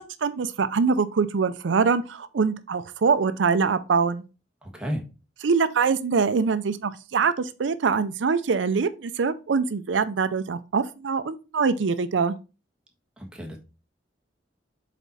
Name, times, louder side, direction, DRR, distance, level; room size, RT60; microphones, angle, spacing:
voice 1, 0.0-4.2 5.4-12.3, right 5 dB, 80° right, 0.5 m, -24 dB
voice 2, 4.6-5.0 13.2-13.6, equal, 5° right, 1.4 m, -32 dB
7.1 x 4.2 x 4.1 m
head